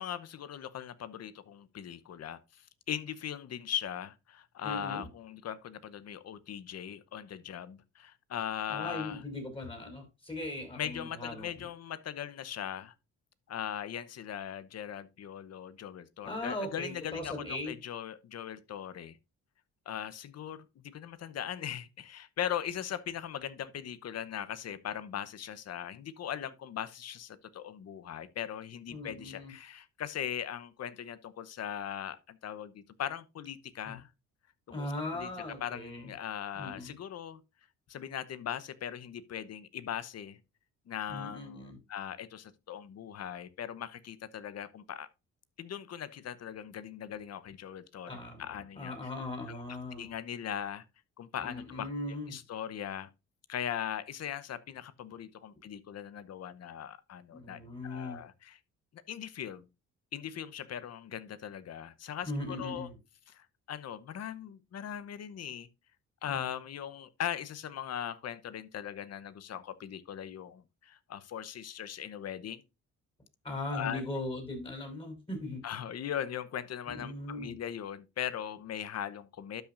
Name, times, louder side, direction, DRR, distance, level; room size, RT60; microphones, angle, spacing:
voice 1, 0.0-9.2 10.7-12.9 13.5-19.2 19.9-34.1 34.7-35.3 35.6-37.4 37.9-40.4 40.9-45.1 45.6-48.9 49.5-49.6 50.0-50.8 51.2-51.9 52.3-53.1 53.5-58.6 59.1-59.7 60.1-62.9 63.3-65.7 66.2-72.6 73.7-74.0 75.6-79.6, left 9 dB, 55° left, 0.9 m, -39 dB
voice 2, 4.6-5.1 8.7-11.7 16.2-17.7 28.9-29.5 33.8-34.0 34.7-36.1 36.5-36.9 41.1-41.8 48.1-48.5 48.7-50.1 51.4-52.3 57.3-58.2 62.2-62.9 66.3-66.4 73.4-75.6 76.9-77.5, left 2 dB, 15° left, 5.0 m, -39 dB
12.0 x 5.8 x 2.5 m
cardioid pair, 90°, 30 cm